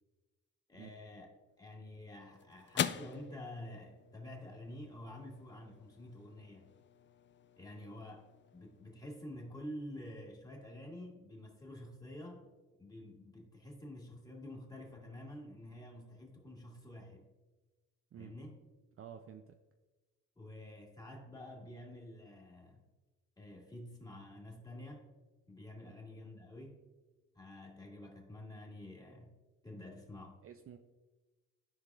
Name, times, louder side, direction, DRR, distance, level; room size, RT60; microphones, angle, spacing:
voice 1, 0.7-1.3 1.6-6.7 7.6-12.5 12.8-17.3 18.2-18.6 20.4-22.8 23.4-25.1 25.5-26.8 27.3-29.4 29.6-30.4, left 1 dB, 10° left, -1 dB, 2.1 m, -49 dB
sound 1, 1.5-10.0, left 9 dB, 35° left, 0.4 m, -45 dB
voice 2, 19.0-19.6 25.8-26.0 30.4-30.8, right 9 dB, 40° right, 6 dB, 0.5 m, -51 dB
13.5 x 4.7 x 2.4 m, 1.2 s
cardioid pair, 80°, 34 cm